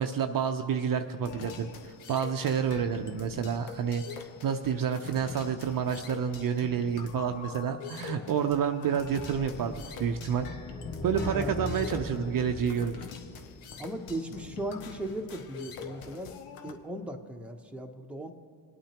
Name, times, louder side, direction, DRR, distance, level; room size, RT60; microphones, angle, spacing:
voice 1, 0.0-4.0 4.4-9.7 10.0-10.5 11.0-12.9, right 7 dB, 45° right, 6 dB, 0.6 m, -29 dB
sound 1, 1.2-16.7, left 6 dB, 80° left, 1.0 m, -44 dB
sound 2, 9.2-14.1, left 2 dB, 20° left, 3.0 m, -39 dB
voice 2, 11.3-11.6 13.8-16.3 16.6-18.3, right 1 dB, ahead, 3 dB, 0.8 m, -37 dB
22.0 x 8.7 x 2.9 m, 2.4 s
supercardioid pair, 75°, 49 cm